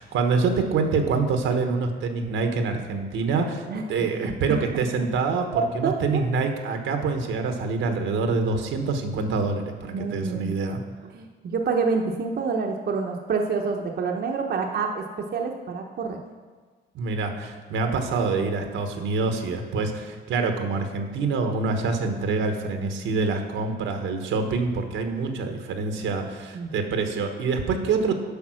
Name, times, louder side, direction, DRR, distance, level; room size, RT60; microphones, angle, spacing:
voice 1, 0.0-10.8 16.9-28.1, right 4 dB, 80° right, 5 dB, 1.2 m, -26 dB
voice 2, 5.6-6.2 9.9-10.5 11.1-16.2 26.5-26.7, right 5 dB, 55° right, 2 dB, 0.9 m, -27 dB
8.6 x 5.4 x 6.3 m, 1.5 s
cardioid pair, 90°, 20 cm